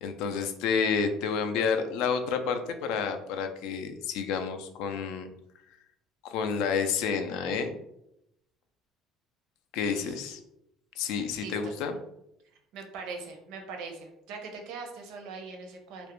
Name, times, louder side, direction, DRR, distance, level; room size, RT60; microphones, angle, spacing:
voice 1, 0.0-5.3 6.2-7.7 9.7-10.4 11.0-12.0, left 6 dB, 75° left, 7 dB, 0.3 m, -29 dB
voice 2, 11.1-11.7 12.7-16.1, right 4 dB, 75° right, 3 dB, 0.5 m, -41 dB
2.3 x 2.1 x 2.9 m, 0.80 s
cardioid pair, 165°, 0 cm